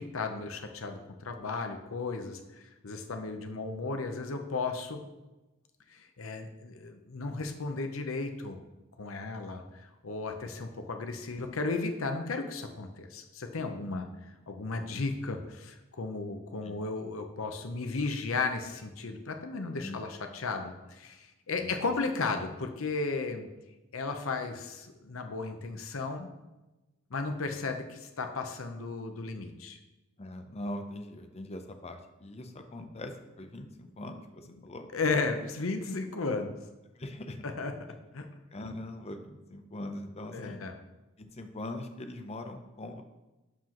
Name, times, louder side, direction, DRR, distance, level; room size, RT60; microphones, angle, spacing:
voice 1, 0.0-5.0 5.9-8.6 9.0-14.1 14.5-23.5 23.9-26.3 27.1-29.8 34.6-34.7 34.9-36.6 37.4-37.7 38.1-38.3 40.3-40.7, left 3 dB, 75° left, 6 dB, 0.8 m, -34 dB
voice 2, 30.2-34.9 36.9-37.4 38.5-40.6 41.2-43.0, left 1 dB, 30° left, 6 dB, 0.7 m, -41 dB
11.5 x 5.0 x 3.0 m, 1.1 s
head